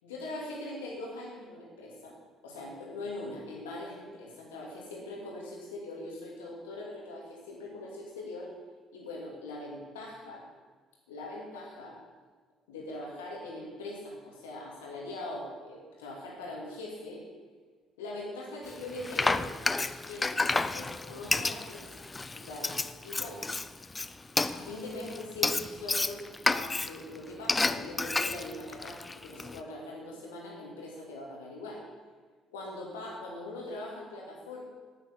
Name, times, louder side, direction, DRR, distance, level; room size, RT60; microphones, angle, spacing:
voice 1, 0.0-2.1 2.4-8.5 8.9-10.5 11.1-12.0 12.7-17.2 18.0-19.5 19.8-21.9 22.3-23.4 24.5-26.2 26.5-31.8 32.5-34.6, left 2 dB, 85° left, -2 dB, 2.9 m, -41 dB
Frying (food), 18.7-29.6, left 3 dB, 25° left, 0.6 m, -31 dB
9.4 x 8.8 x 7.8 m, 1.4 s
hypercardioid pair, 50°, 0 cm